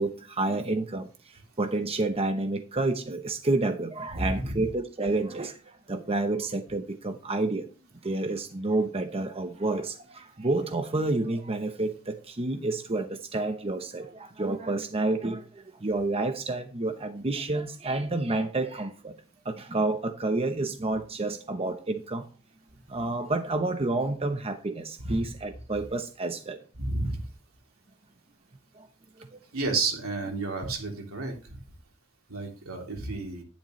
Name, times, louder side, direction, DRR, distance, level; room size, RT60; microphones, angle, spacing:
voice 1, 0.0-7.7 8.0-19.2 19.4-22.3 22.9-26.6 28.7-28.9, right 2 dB, 30° right, 0.9 m, -29 dB
voice 2, 4.1-4.7 25.0-25.3 26.8-27.2 29.5-31.6 32.3-33.4, right 3 dB, 75° right, 3.1 m, -31 dB
12.0 x 10.5 x 3.2 m
head